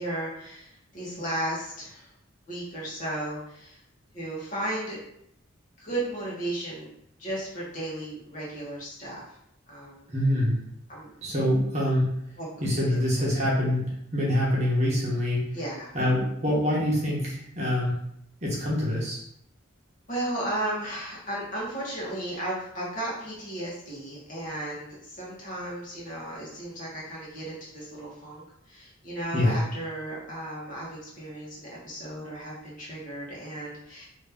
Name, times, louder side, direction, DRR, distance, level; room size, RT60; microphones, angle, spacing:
voice 1, 0.0-2.1 2.5-3.8 4.1-5.0 5.8-6.9 7.2-9.3 9.7-10.0 10.9-11.1 12.4-12.5 12.9-13.0 15.5-15.9 20.1-34.1, right 1 dB, 40° left, -6 dB, 1.2 m, -35 dB
voice 2, 10.1-10.5 11.2-12.1 12.6-15.5 15.9-17.9 18.4-19.2 29.3-29.6, left 1 dB, 35° right, -5 dB, 1.0 m, -25 dB
2.9 x 2.7 x 3.5 m, 0.74 s
head